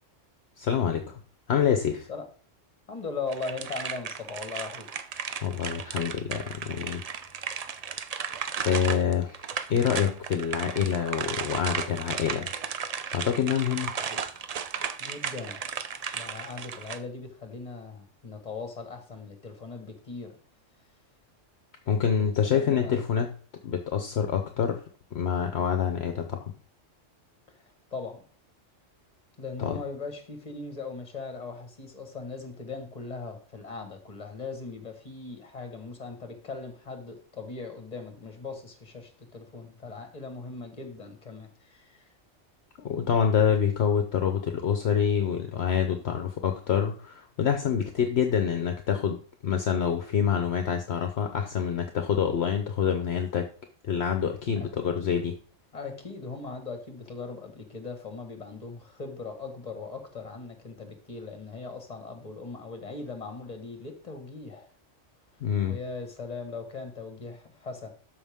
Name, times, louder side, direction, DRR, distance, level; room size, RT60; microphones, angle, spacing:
voice 1, 0.6-1.2 1.5-2.1 5.4-7.0 7.5-7.6 8.6-12.5 13.1-13.9 21.9-23.3 23.6-24.8 25.1-26.4 29.6-29.8 42.8-53.5 53.8-55.4 65.4-65.7, left 8 dB, 60° left, 1.0 m, -26 dB
voice 2, 2.9-4.9 14.0-14.2 15.0-15.6 16.1-20.4 22.1-22.9 27.6-28.2 29.4-42.1 54.5-54.7 55.7-64.7 65.7-67.9, left 4 dB, 30° left, 1.6 m, -39 dB
sound 1, 3.3-17.0, right 6 dB, 55° right, 0.4 m, -35 dB
13.0 x 5.2 x 3.6 m
omnidirectional pair, 1.3 m